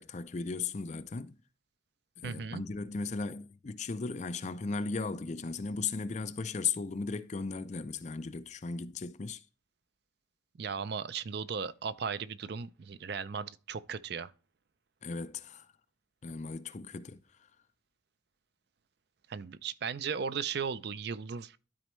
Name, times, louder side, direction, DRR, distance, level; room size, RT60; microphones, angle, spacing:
voice 1, 0.0-1.4 2.2-9.4 15.0-15.7 16.2-17.2, left 4 dB, 35° left, 0.4 m, -36 dB
voice 2, 2.2-2.6 10.6-14.3 19.3-21.6, right 6 dB, 55° right, 0.4 m, -36 dB
12.5 x 4.2 x 3.1 m
head